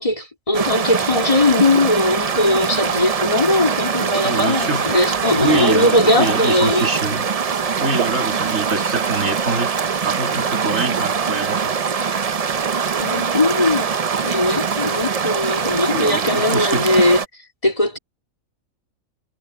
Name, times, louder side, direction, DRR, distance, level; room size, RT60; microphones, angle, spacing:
voice 1, 0.0-6.9 13.0-17.2 17.6-18.0, left 2 dB, 25° left, 3.1 m, -19 dB
sound 1, 0.5-17.2, right 6 dB, 45° right, 0.5 m, -22 dB
voice 2, 4.2-4.9 5.3-7.3 7.7-9.7 10.0-11.7 15.9-16.9, right 3 dB, 65° right, 3.0 m, -25 dB
omnidirectional pair, 1.5 m